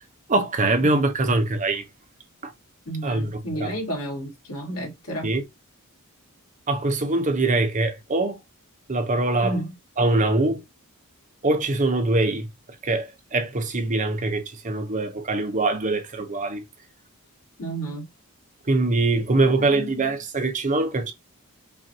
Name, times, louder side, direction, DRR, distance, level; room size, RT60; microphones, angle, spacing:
voice 1, 0.3-1.8 3.0-3.7 5.2-5.4 6.7-8.4 8.9-9.6 10.0-10.6 11.4-12.5 12.8-16.6 18.7-21.1, right 2 dB, 35° right, 0.7 m, -23 dB
voice 2, 2.9-5.3 9.4-9.7 17.6-18.1 19.6-20.0, right 1 dB, 80° left, 2.2 m, -32 dB
5.6 x 2.6 x 2.7 m
head